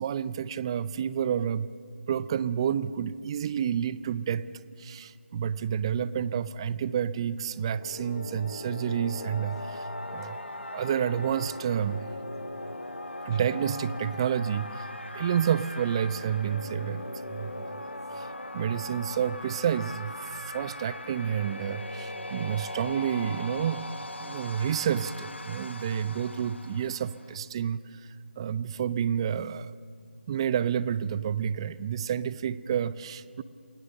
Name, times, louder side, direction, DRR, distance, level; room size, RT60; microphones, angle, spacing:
voice 1, 0.0-1.7 2.1-4.5 4.8-10.5 10.7-12.1 13.3-14.9 15.1-17.8 18.1-23.9 24.2-29.8 30.3-33.4, right 8 dB, 25° right, 18 dB, 0.6 m, -30 dB
sound 1, 7.5-27.4, left 1 dB, 90° left, 1.5 m, -40 dB
28.5 x 18.5 x 6.6 m, 2.2 s
figure-of-eight pair, 155°, 6 cm